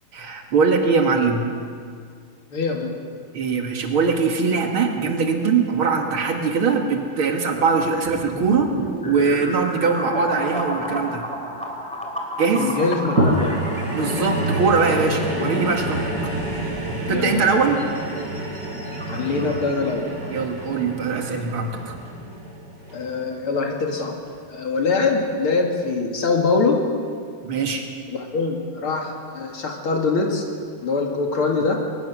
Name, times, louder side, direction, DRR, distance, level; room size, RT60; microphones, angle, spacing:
voice 1, 0.1-1.5 3.3-8.7 9.0-11.2 12.4-12.7 13.9-16.0 17.1-17.8 20.3-21.9 27.4-27.9, right 5 dB, 75° right, 3 dB, 2.7 m, -21 dB
voice 2, 2.5-2.9 12.5-13.7 17.1-17.5 19.1-20.0 22.9-24.2 24.5-26.8 28.1-30.4 30.8-31.8, left 4 dB, 80° left, 1 dB, 3.0 m, -23 dB
sound 1, 8.0-22.3, equal, 5° left, 2.6 m, -33 dB
sound 2, 13.2-23.7 24.3-24.4, right 1 dB, 50° right, 5.6 m, -27 dB
22.0 x 19.0 x 6.3 m, 2.2 s
omnidirectional pair, 2.4 m